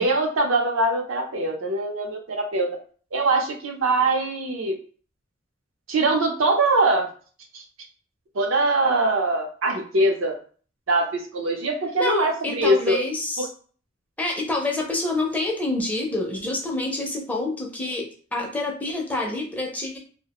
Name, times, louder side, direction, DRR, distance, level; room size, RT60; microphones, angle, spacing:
voice 1, 0.0-2.7 3.1-4.7 5.9-7.1 7.5-7.6 8.3-10.3 10.9-13.0, right 2 dB, 80° right, 2 dB, 0.6 m, -22 dB
voice 2, 12.0-13.5 14.2-20.0, left 2 dB, 10° left, 0 dB, 0.4 m, -27 dB
2.4 x 2.1 x 2.9 m, 0.42 s
head